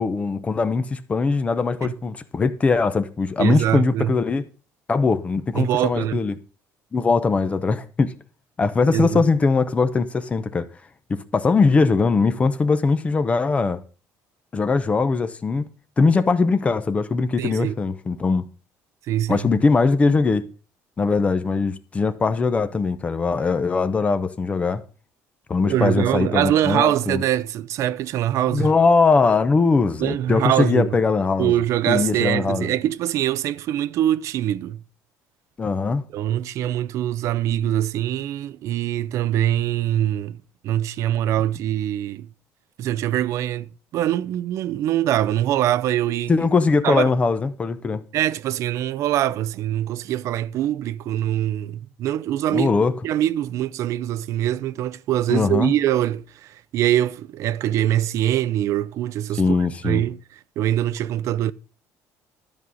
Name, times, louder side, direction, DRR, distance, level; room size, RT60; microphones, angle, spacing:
voice 1, 0.0-4.4 4.9-6.3 6.9-8.1 8.6-10.7 11.1-13.8 14.5-15.7 16.0-18.5 19.3-20.4 21.0-24.8 25.5-27.2 28.5-31.5 31.9-32.7 35.6-36.0 46.3-48.0 52.5-52.9 55.3-55.7 59.4-60.0, left 4 dB, 20° left, 0.7 m, -21 dB
voice 2, 3.4-4.1 5.5-6.2 8.9-9.2 17.4-17.8 19.1-19.4 25.6-28.7 30.0-31.0 31.4-34.8 36.1-40.4 40.6-42.3 42.8-46.3 46.8-47.1 48.1-52.7 53.0-61.5, right 12 dB, 60° right, 0.5 m, -23 dB
12.5 x 5.4 x 6.3 m
cardioid pair, 140°, 6 cm